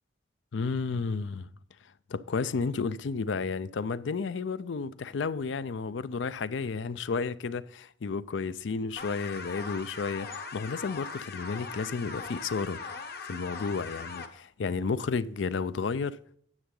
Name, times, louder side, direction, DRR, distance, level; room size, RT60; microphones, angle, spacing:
voice 1, 0.5-1.5 2.1-12.8 13.2-16.2, left 4 dB, 80° left, 0.5 m, -32 dB
sound 1, 9.0-14.3, left 4 dB, 55° left, 1.1 m, -40 dB
9.8 x 7.6 x 3.8 m
head